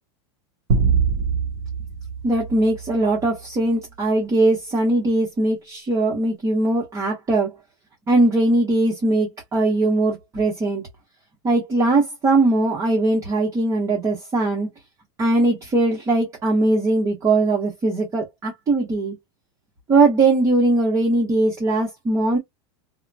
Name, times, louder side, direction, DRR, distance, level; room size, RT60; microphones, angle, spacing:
sound 1, 0.7-3.3, right 6 dB, 70° right, 0.7 m, -23 dB
voice 1, 2.2-7.5 8.1-10.8 11.4-14.7 15.2-19.2 19.9-22.4, right 2 dB, 20° right, 1.0 m, -20 dB
2.9 x 2.1 x 2.3 m
supercardioid pair, 145°, 16 cm